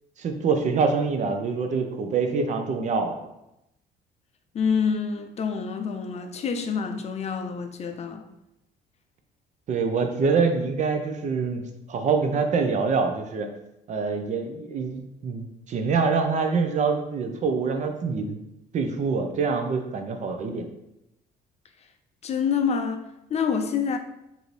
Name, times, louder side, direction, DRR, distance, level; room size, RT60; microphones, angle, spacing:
voice 1, 0.2-3.2 9.7-11.6 11.9-13.5 13.9-18.4 18.7-20.7, right 5 dB, 45° right, 0.6 m, -25 dB
voice 2, 4.5-8.3 22.2-24.0, left 6 dB, 40° left, 0.4 m, -27 dB
4.9 x 2.7 x 3.1 m
cardioid pair, 110°, 17 cm